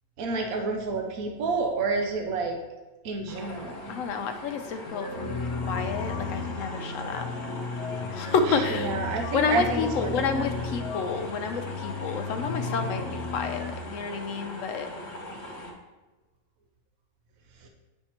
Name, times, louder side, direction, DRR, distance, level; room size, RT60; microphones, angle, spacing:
voice 1, 0.2-2.6 3.0-4.0 8.5-10.4 11.0-11.2, right 3 dB, 75° right, 2 dB, 1.1 m, -29 dB
sound 1, 3.3-15.7, left 1 dB, 50° left, 1.2 m, -41 dB
voice 2, 3.9-7.2 8.1-8.9 9.3-14.9, left 5 dB, 70° left, 7 dB, 0.9 m, -30 dB
sound 2, 4.8-13.7, left 4 dB, 85° left, 1.3 m, -34 dB
8.6 x 4.5 x 2.9 m, 1.2 s
omnidirectional pair, 1.6 m